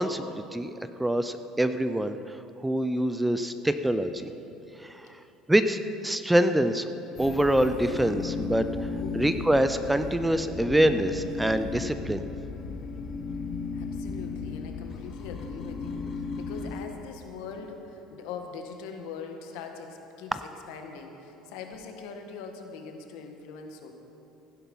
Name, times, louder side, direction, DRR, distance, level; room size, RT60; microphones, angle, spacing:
voice 1, 0.0-4.3 4.8-5.2 5.5-6.9 7.2-8.7 9.2-12.2 20.3-20.4, right 1 dB, 5° right, 10 dB, 0.5 m, -25 dB
sound 1, 7.2-16.7, left 4 dB, 40° left, 1.2 m, -35 dB
voice 2, 13.7-23.9, left 5 dB, 80° left, 4 dB, 1.5 m, -42 dB
15.5 x 10.5 x 5.5 m, 3.0 s
cardioid pair, 130°, 0 cm